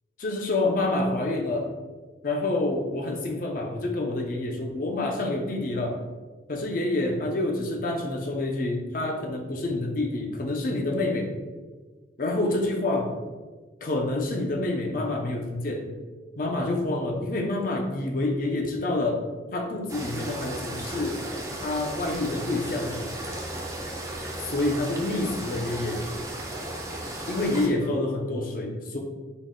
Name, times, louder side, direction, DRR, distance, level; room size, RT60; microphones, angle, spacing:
voice 1, 0.2-1.7 2.2-6.0 6.5-11.3 12.2-13.1 13.8-15.9 16.4-19.2 19.5-21.2 21.6-23.0 24.4-26.0 27.3-29.0, left 2 dB, 50° left, 2 dB, 0.5 m, -27 dB
sound 1, 19.9-27.7, right 1 dB, 20° right, 0.4 m, -35 dB
3.9 x 2.1 x 3.6 m, 1.3 s
head